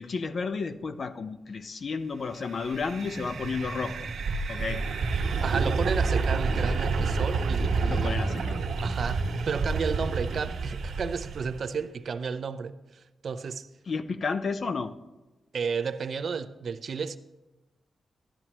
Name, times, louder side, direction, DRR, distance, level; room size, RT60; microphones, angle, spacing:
voice 1, 0.0-4.0 4.5-4.8 7.8-8.6 13.9-14.9, left 4 dB, 55° left, 0.6 m, -32 dB
sound 1, 2.4-11.6, right 4 dB, 85° right, 1.2 m, -29 dB
voice 2, 5.4-8.2 8.8-13.7 15.5-17.2, right 5 dB, 65° right, 0.5 m, -32 dB
12.5 x 11.0 x 3.0 m
cardioid pair, 75°, 0 cm